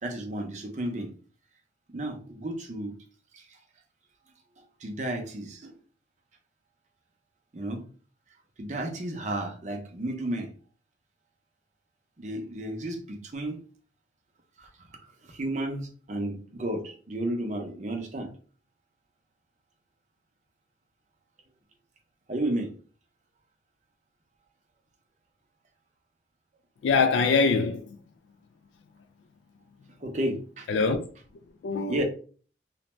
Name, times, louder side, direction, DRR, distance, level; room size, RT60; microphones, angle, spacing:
voice 1, 0.0-1.1 1.9-2.9 3.3-3.4 4.8-5.7 7.5-7.8 8.6-10.5 12.2-13.6 14.6-14.7 15.3-18.3 22.3-22.7 30.0-30.7 31.9-32.0, right 1 dB, 40° right, 0.5 m, -32 dB
voice 2, 26.8-28.0 30.7-31.0 31.6-32.0, left 4 dB, 85° left, 0.3 m, -23 dB
2.5 x 2.1 x 3.0 m
head